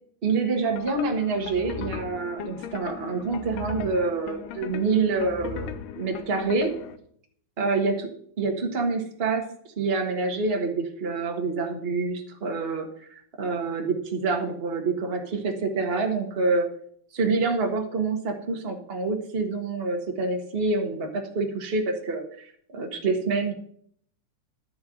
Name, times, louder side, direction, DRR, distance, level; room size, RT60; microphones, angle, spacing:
voice 1, 0.2-6.7 7.6-8.1 8.4-9.5 9.8-16.7 17.1-23.5, right 4 dB, 55° right, 3 dB, 0.6 m, -27 dB
sound 1, 0.7-7.0, left 8 dB, 90° left, 2.4 m, -38 dB
12.5 x 4.6 x 7.7 m, 0.62 s
omnidirectional pair, 3.6 m